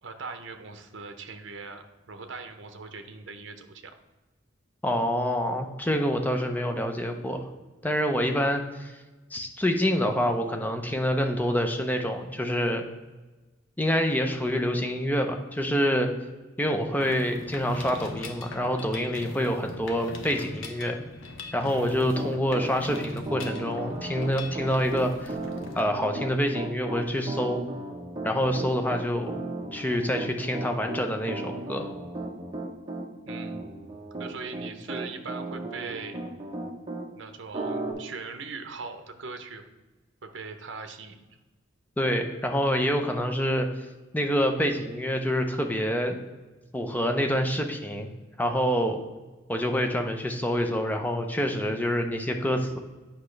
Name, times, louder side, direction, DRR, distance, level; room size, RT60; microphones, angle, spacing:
voice 1, 0.0-3.9 21.7-22.0 33.3-33.6 34.2-36.2 37.2-39.6 40.2-41.2, right 4 dB, 65° right, 7 dB, 0.7 m, -40 dB
voice 2, 4.8-7.5 7.8-8.9 9.3-12.8 13.8-16.1 16.6-21.0 21.5-25.4 25.7-27.6 28.2-29.4 29.7-31.9 42.0-43.7 44.1-46.1 46.7-48.1 48.4-49.0 49.5-52.8, equal, 10° left, 5 dB, 0.6 m, -26 dB
Mechanisms, 17.0-25.8, left 2 dB, 85° left, 0.9 m, -42 dB
Piano, 21.9-37.1 37.5-37.9, right 2 dB, 25° right, 0.8 m, -35 dB
8.5 x 5.7 x 3.2 m, 1.2 s
head